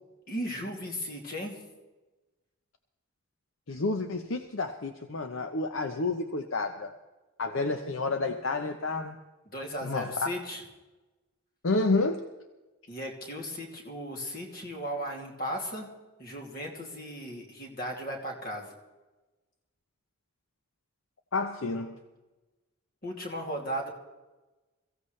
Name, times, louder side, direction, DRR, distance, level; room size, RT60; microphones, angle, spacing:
voice 1, 0.3-1.6 9.5-10.6 12.9-15.9 16.2-18.7 23.0-23.9, equal, 40° left, 0 dB, 2.7 m, -36 dB
voice 2, 3.7-6.9 7.4-9.2 9.8-10.3 11.6-12.2 21.3-22.0, left 3 dB, 65° left, 6 dB, 0.8 m, -30 dB
23.0 x 15.5 x 3.3 m, 1.2 s
head